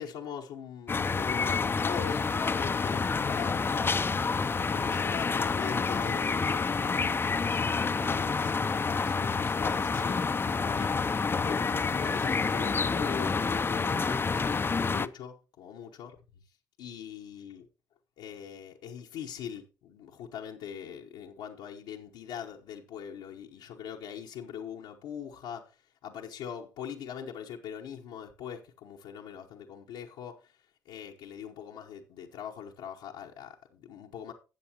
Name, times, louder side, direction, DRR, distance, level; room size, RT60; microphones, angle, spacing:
voice 1, 0.0-3.9 4.5-11.1 11.4-16.2 16.8-17.7 18.2-25.7 26.0-30.3 30.9-34.3, left 8 dB, 80° left, 1.0 m, -42 dB
sound 1, 0.9-15.1, left 4 dB, 30° left, 0.5 m, -28 dB
13.0 x 7.8 x 2.9 m
supercardioid pair, 65°, 8 cm